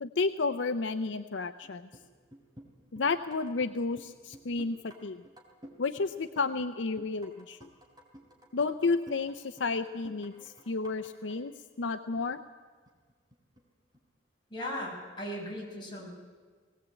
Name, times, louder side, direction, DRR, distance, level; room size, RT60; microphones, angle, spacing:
voice 1, 0.0-1.8 2.9-5.2 5.8-7.7 8.5-11.5 11.8-12.4, left 4 dB, 70° left, 10 dB, 0.6 m, -31 dB
sound 1, 1.6-2.1 2.3-3.7 4.0-5.0 5.2-6.1 6.4-6.7 7.0-11.4 11.7-11.8 12.2-12.4 12.9-13.6 13.9-14.0, equal, 20° right, 3.3 m, -53 dB
voice 2, 14.5-16.1, equal, 25° left, -3 dB, 6.2 m, -37 dB
20.0 x 18.0 x 8.3 m, 1.5 s
head